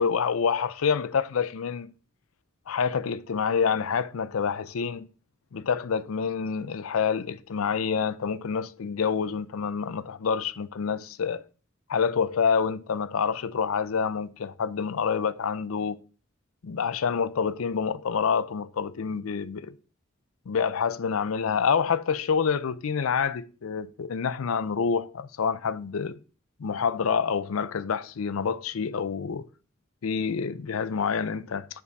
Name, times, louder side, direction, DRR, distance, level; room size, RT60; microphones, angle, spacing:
voice 1, 0.0-1.9 2.7-5.0 5.5-11.4 11.9-15.9 16.6-19.8 20.5-26.2 26.6-29.5 30.0-31.7, left 6 dB, 80° left, 0.5 m, -27 dB
9.6 x 3.6 x 4.0 m
head